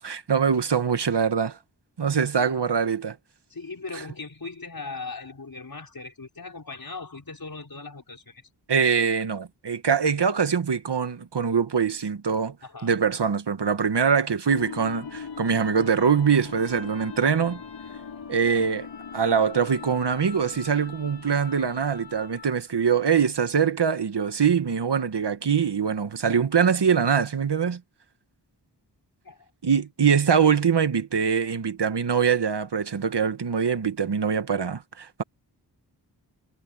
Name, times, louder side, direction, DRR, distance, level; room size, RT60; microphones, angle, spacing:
voice 1, 0.0-1.6 2.0-3.2 8.7-12.6 12.8-17.6 18.3-18.9 19.1-27.8 29.6-35.2, right 6 dB, 70° right, 1.5 m, -23 dB
voice 2, 3.5-8.4 12.6-12.9 18.5-18.7 29.2-29.5, left 3 dB, 55° left, 5.0 m, -39 dB
sound 1, 14.5-22.7, left 6 dB, 90° left, 5.9 m, -40 dB
cardioid pair, 40°, 42 cm